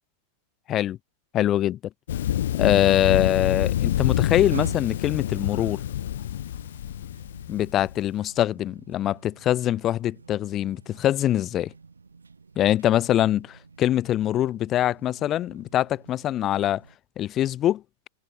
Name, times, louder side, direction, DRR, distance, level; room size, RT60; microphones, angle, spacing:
voice 1, 1.3-1.8 2.6-5.8 7.5-11.7 12.6-16.8 17.2-17.8, left 12 dB, 30° left, 2.9 m, -23 dB
Thunder, 2.1-7.9, left 11 dB, 60° left, 2.2 m, -27 dB
sound 1, 2.1-17.0, right 4 dB, 75° right, 4.7 m, -45 dB
figure-of-eight pair, 90°, 0 cm